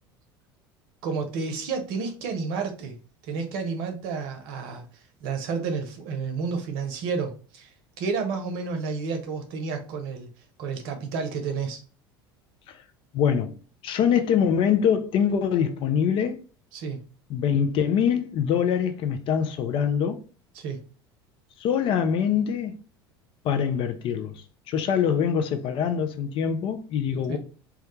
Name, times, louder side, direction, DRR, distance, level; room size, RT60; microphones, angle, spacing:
voice 1, 1.0-2.9 3.2-4.8 5.2-7.7 8.0-10.3 10.6-11.8 16.7-17.0 20.5-20.8 27.3-27.4, right 5 dB, 60° right, 0.6 m, -30 dB
voice 2, 13.1-13.6 13.8-16.4 17.3-20.2 21.6-22.7 23.4-27.4, left 8 dB, 45° left, 0.4 m, -24 dB
2.3 x 2.1 x 2.9 m
hypercardioid pair, 75°, 13 cm